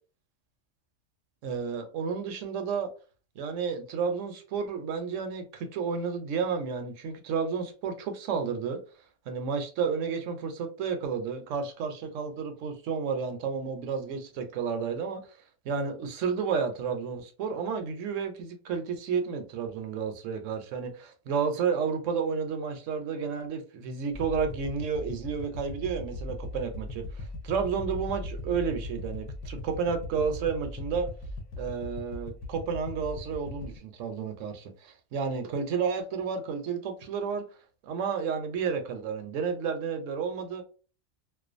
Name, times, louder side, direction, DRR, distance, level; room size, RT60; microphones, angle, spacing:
voice 1, 1.4-2.9 3.4-8.8 9.3-15.4 15.6-31.1 31.6-37.4 37.8-40.6, right 6 dB, 85° right, 0.9 m, -31 dB
sound 1, 24.1-33.8, left 2 dB, 75° left, 0.9 m, -39 dB
2.4 x 2.2 x 2.4 m
omnidirectional pair, 1.3 m